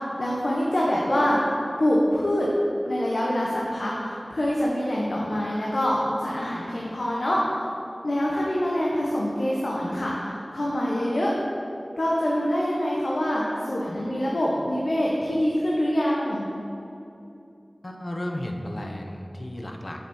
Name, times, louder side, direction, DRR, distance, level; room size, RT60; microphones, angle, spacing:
voice 1, 0.0-1.4 1.8-2.5 2.9-7.6 8.0-11.4 12.0-16.5, equal, 85° left, -5 dB, 1.3 m, -25 dB
voice 2, 17.8-20.0, left 1 dB, 50° left, 2 dB, 1.0 m, -33 dB
8.4 x 7.2 x 6.3 m, 2.8 s
wide cardioid pair, 55°, 0 cm